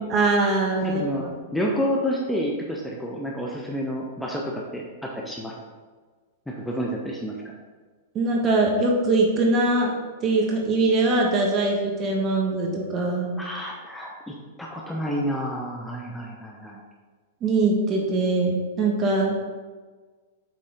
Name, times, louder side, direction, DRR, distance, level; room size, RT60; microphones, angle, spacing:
voice 1, 0.0-1.3 8.1-9.9 10.2-13.3 17.4-19.4, right 2 dB, 30° right, 0 dB, 1.6 m, -22 dB
voice 2, 0.8-1.2 1.5-5.5 6.5-7.4 13.4-16.8, equal, 5° left, -2 dB, 0.8 m, -29 dB
7.6 x 4.2 x 3.8 m, 1.4 s
hypercardioid pair, 105°, 0 cm